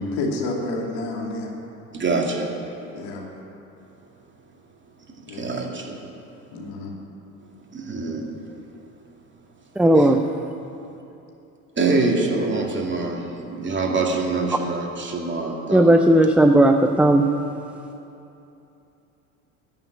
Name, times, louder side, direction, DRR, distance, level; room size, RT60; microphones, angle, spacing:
voice 1, 0.2-1.5 2.9-3.3 5.3-5.6 6.5-7.0, left 2 dB, 65° left, 0 dB, 2.6 m, -29 dB
voice 2, 1.9-2.5 5.3-6.0 7.7-8.3 9.9-10.1 11.8-16.0, right 3 dB, 25° right, 1 dB, 2.4 m, -25 dB
voice 3, 9.8-10.2 15.7-17.3, right 1 dB, 5° right, 5 dB, 0.6 m, -15 dB
14.5 x 7.0 x 9.3 m, 2.8 s
hypercardioid pair, 70°, 43 cm